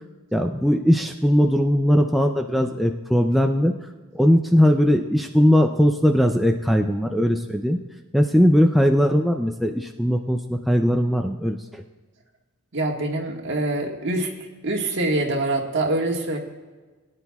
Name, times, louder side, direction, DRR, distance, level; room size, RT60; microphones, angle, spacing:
voice 1, 0.3-3.7 4.1-7.8 8.1-11.8, equal, ahead, 3 dB, 0.4 m, -19 dB
voice 2, 12.7-14.3 14.6-16.4, right 2 dB, 55° right, 1 dB, 1.6 m, -24 dB
20.5 x 10.0 x 2.3 m, 1.3 s
head